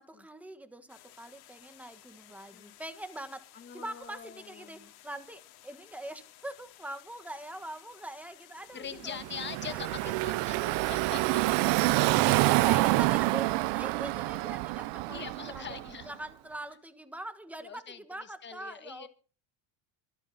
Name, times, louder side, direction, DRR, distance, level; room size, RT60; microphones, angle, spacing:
voice 1, 0.0-9.2 9.7-10.2 12.2-15.8 16.0-19.1, right 1 dB, 5° right, 9 dB, 1.3 m, -43 dB
sound 1, 0.9-10.3, left 14 dB, 80° left, 3.8 m, -56 dB
voice 2, 3.5-4.9 8.7-11.4 11.9-12.0 15.1-16.1 17.6-19.1, left 7 dB, 20° left, 9 dB, 1.4 m, -43 dB
Car passing by / Traffic noise roadway noise, 9.1-16.0, right 20 dB, 60° right, 0.6 m, -27 dB
25.0 x 9.0 x 4.0 m, 0.36 s
cardioid pair, 165°, 48 cm